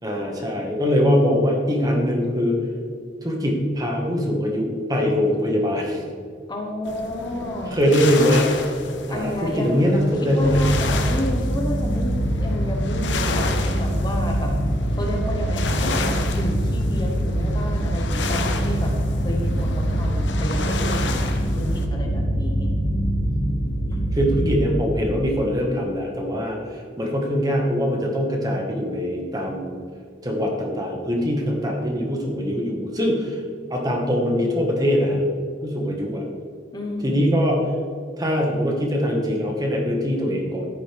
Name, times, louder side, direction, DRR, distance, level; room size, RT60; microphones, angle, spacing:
voice 1, 0.0-2.6 3.2-6.0 7.7-8.5 9.1-10.7 19.6-19.7 23.3-23.4 24.1-29.8 30.2-33.4 33.7-35.2 35.6-36.2 37.0-37.7 38.2-40.7, equal, 20° right, 0 dB, 1.6 m, -22 dB
voice 2, 6.5-7.8 9.1-9.9 10.2-14.5 14.9-18.9 19.2-22.7 36.7-37.4, left 1 dB, 25° left, 0 dB, 1.2 m, -31 dB
sound 1, 6.8-21.9, left 3 dB, 70° left, 1.0 m, -31 dB
sound 2, 10.4-24.6, right 1 dB, 50° left, 2.8 m, -24 dB
14.5 x 10.0 x 3.5 m, 2.2 s
head